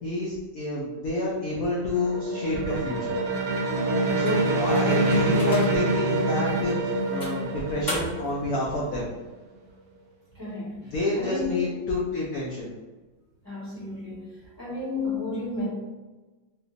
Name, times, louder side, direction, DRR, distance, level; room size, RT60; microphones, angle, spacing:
voice 1, 0.0-3.1 4.1-9.1 10.9-12.7, left 2 dB, 70° left, -4 dB, 0.8 m, -29 dB
sound 1, 1.4-9.1, right 2 dB, 85° right, 0.6 m, -26 dB
sound 2, 4.2-6.0 6.5-6.6 7.2-8.4, left 1 dB, 15° left, 0.8 m, -36 dB
voice 2, 4.9-5.3 10.3-11.7 13.4-14.3 14.6-15.7, left 3 dB, 10° right, -12 dB, 1.3 m, -32 dB
3.3 x 3.1 x 2.5 m, 1.2 s
omnidirectional pair, 2.0 m